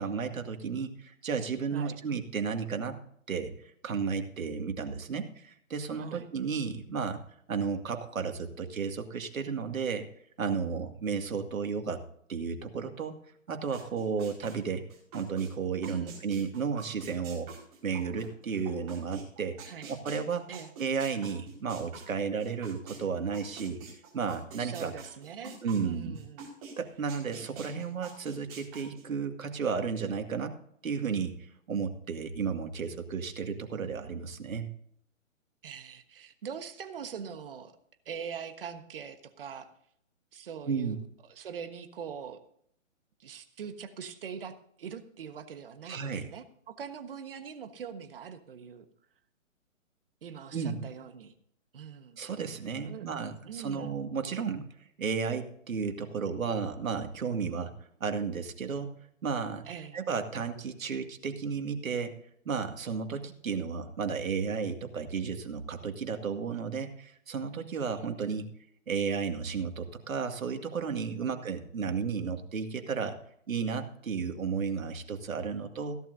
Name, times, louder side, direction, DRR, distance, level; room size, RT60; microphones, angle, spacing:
voice 1, 0.0-3.0 3.3-7.2 7.5-10.1 10.4-12.0 12.3-13.2 13.5-14.8 15.1-17.5 17.8-19.6 19.9-20.5 20.8-23.8 24.1-24.9 25.6-26.2 26.8-30.5 30.8-34.7 40.7-41.0 45.9-46.3 50.5-50.8 52.2-54.6 55.0-57.7 58.0-58.9 59.2-59.7 59.9-62.2 62.5-68.5 68.9-73.2 73.5-76.0, right 6 dB, 85° right, 6 dB, 2.2 m, -33 dB
sound 1, 13.7-15.5 15.8-23.0 23.3-26.7 27.1-29.0, right 5 dB, 25° right, 4.8 m, -46 dB
voice 2, 24.6-25.6 25.8-26.5 35.6-37.7 38.0-39.7 40.3-41.0 41.3-42.4 43.2-48.8 50.2-51.3 51.7-52.2 52.8-53.1 53.5-53.9 59.7-60.0 71.2-71.4, right 7 dB, 45° right, 9 dB, 1.3 m, -42 dB
16.5 x 12.0 x 2.7 m, 0.68 s
hypercardioid pair, 165°, 40 cm